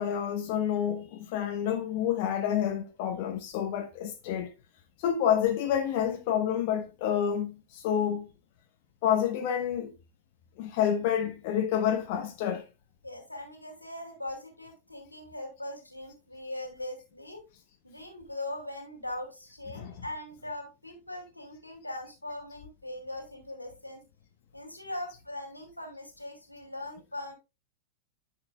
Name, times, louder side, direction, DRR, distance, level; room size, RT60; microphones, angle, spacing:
voice 1, 0.0-4.5 5.0-8.3 9.0-9.9 10.6-12.7 19.7-20.1, left 9 dB, 50° left, 1.0 m, -28 dB
voice 2, 13.0-17.4 17.8-24.0 24.5-27.3, left 1 dB, 85° left, 2.4 m, -40 dB
10.5 x 6.6 x 2.2 m
figure-of-eight pair, 90°, 0 cm